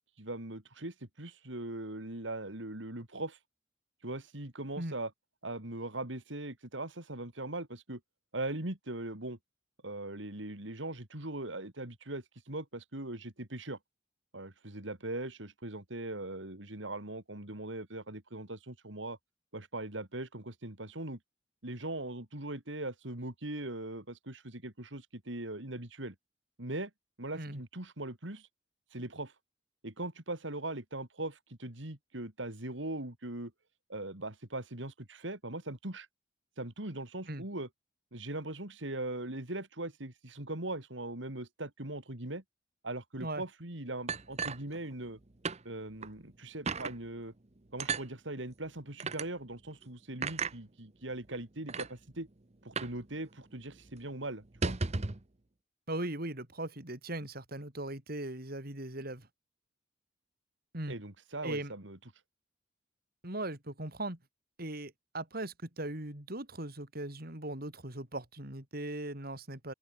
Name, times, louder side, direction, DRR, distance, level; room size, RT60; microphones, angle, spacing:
voice 1, 0.2-3.4 4.0-5.1 5.4-8.0 8.3-9.4 9.8-13.8 14.3-19.2 19.5-21.2 21.6-26.1 26.6-26.9 27.2-28.5 28.9-29.3 29.8-33.5 33.9-36.1 36.6-37.7 38.1-42.4 42.8-45.2 45.6-47.3 47.7-52.3 52.6-54.7 60.9-62.0, right 2 dB, 75° right, 3.5 m, -40 dB
sound 1, 44.1-45.2 45.4-45.6 46.0-46.1 46.7-47.0 47.8-48.1 49.0-49.3 50.2-50.6 51.3-51.4 51.7-51.9 52.8-53.0 53.3-53.4 53.7-53.9 54.4-55.2, right 4 dB, 35° right, 1.0 m, -34 dB
voice 2, 55.9-59.3 60.7-60.9 61.4-61.7 63.2-64.2 64.6-69.7, right 1 dB, 50° right, 4.6 m, -39 dB
open air
head